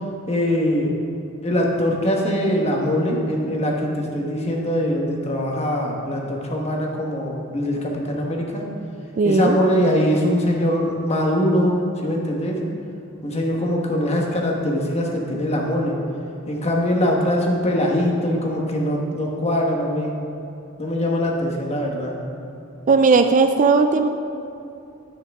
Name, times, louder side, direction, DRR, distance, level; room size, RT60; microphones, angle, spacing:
voice 1, 0.3-0.9 1.4-8.6 9.2-12.6 13.2-16.0 16.5-20.1 20.8-22.3, equal, 30° left, 0 dB, 1.2 m, -22 dB
voice 2, 9.2-9.6 22.9-24.1, right 4 dB, 35° right, 8 dB, 0.3 m, -16 dB
10.0 x 8.8 x 3.5 m, 2.7 s
head